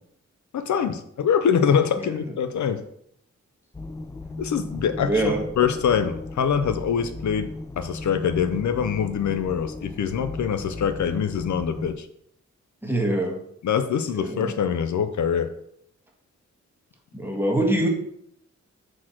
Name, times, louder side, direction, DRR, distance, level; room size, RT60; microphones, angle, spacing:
voice 1, 0.5-2.8 4.4-7.5 7.8-12.1 13.6-15.5, left 7 dB, 75° left, 10 dB, 0.6 m, -24 dB
sound 1, 3.7-11.9, left 2 dB, 10° left, 0.3 m, -36 dB
voice 2, 5.0-5.4 12.8-13.4 14.1-14.5 17.1-17.9, right 1 dB, 5° right, 0 dB, 1.5 m, -24 dB
6.1 x 4.4 x 4.4 m, 0.72 s
wide cardioid pair, 95°, 29 cm